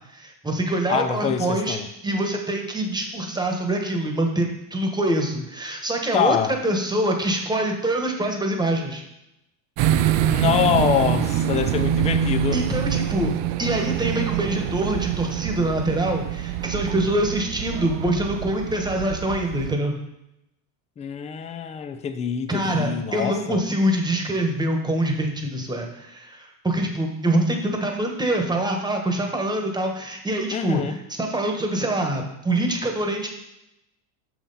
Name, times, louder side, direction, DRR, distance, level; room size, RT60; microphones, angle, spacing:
voice 1, 0.1-1.8 2.0-6.4 6.6-9.0 12.5-13.3 13.6-19.9 22.5-30.8 31.2-33.3, right 1 dB, 10° right, 2 dB, 1.2 m, -25 dB
voice 2, 0.9-1.9 6.1-6.6 10.3-12.6 21.0-23.6 30.5-31.0, left 8 dB, 15° left, 9 dB, 0.3 m, -25 dB
sound 1, 9.8-19.7, right 10 dB, 65° right, 0.6 m, -25 dB
5.9 x 5.8 x 4.1 m, 0.86 s
supercardioid pair, 100°, 50 cm